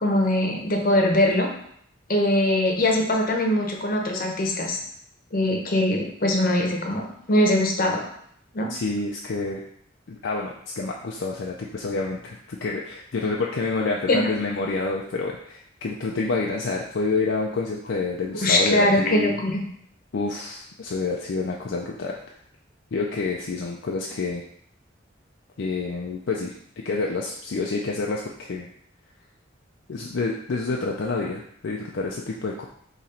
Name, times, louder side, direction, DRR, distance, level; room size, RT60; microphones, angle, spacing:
voice 1, 0.0-1.5 2.1-4.8 5.3-8.0 8.5-8.7 14.1-14.2 18.4-19.6, left 1 dB, 45° left, 0 dB, 0.9 m, -22 dB
voice 2, 8.7-9.6 10.1-19.4 20.1-22.2 22.9-24.4 25.6-26.5 26.8-28.7 29.9-32.7, left 3 dB, 65° left, -1 dB, 0.4 m, -28 dB
3.8 x 3.0 x 4.2 m, 0.68 s
head